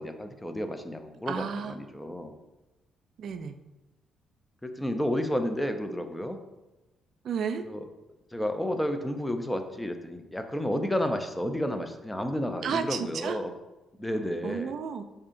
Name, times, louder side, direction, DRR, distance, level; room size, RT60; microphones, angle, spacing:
voice 1, 0.0-2.3 4.6-6.4 7.6-7.8 8.3-13.5 14.0-14.7, equal, 10° left, 7 dB, 0.4 m, -31 dB
voice 2, 1.3-1.8 3.2-3.5 7.2-7.6 12.6-13.4 14.4-15.0, right 6 dB, 65° right, 9 dB, 0.3 m, -32 dB
4.8 x 2.7 x 2.5 m, 1.1 s
cardioid pair, 90°, 0 cm